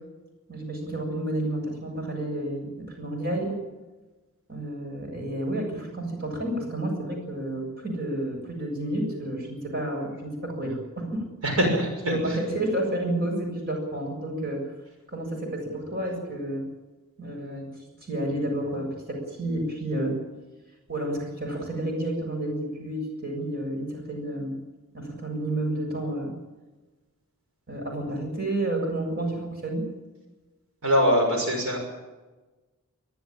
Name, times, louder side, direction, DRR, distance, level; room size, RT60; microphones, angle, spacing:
voice 1, 0.5-3.6 4.5-11.3 12.1-14.6 15.1-16.6 17.2-17.7 18.0-20.1 20.9-24.6 24.9-26.3 27.7-29.8, right 1 dB, 45° right, 1 dB, 7.2 m, -30 dB
voice 2, 11.4-12.4 30.8-31.8, equal, 80° right, 2 dB, 6.3 m, -23 dB
24.0 x 14.5 x 9.0 m, 1.2 s
head